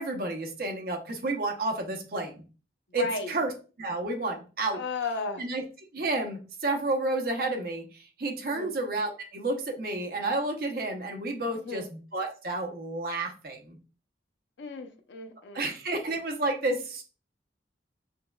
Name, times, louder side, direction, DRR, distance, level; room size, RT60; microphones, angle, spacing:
voice 1, 0.0-2.4 2.9-3.5 3.8-4.8 5.4-5.6 5.9-11.8 12.1-13.8 15.5-17.0, right 2 dB, 55° right, 0.7 m, -31 dB
voice 2, 2.9-3.4 4.7-5.4 8.5-8.8 11.5-11.9 14.6-15.7, left 4 dB, 85° left, 0.6 m, -35 dB
5.7 x 2.2 x 2.2 m
head